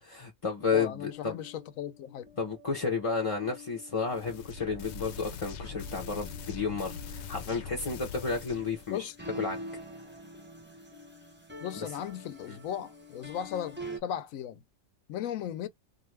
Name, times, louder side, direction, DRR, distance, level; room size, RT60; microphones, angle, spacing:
voice 1, 0.0-1.4 2.4-9.1 9.3-9.6 12.5-12.6, left 5 dB, 35° left, 0.5 m, -32 dB
sound 1, 0.6-14.0, equal, 10° right, 0.5 m, -47 dB
voice 2, 0.7-2.3 8.9-9.2 11.6-14.6 15.1-15.7, left 9 dB, 85° left, 1.0 m, -36 dB
sound 2, 4.0-8.9, left 5 dB, 65° left, 0.8 m, -42 dB
2.5 x 2.4 x 3.2 m
omnidirectional pair, 1.4 m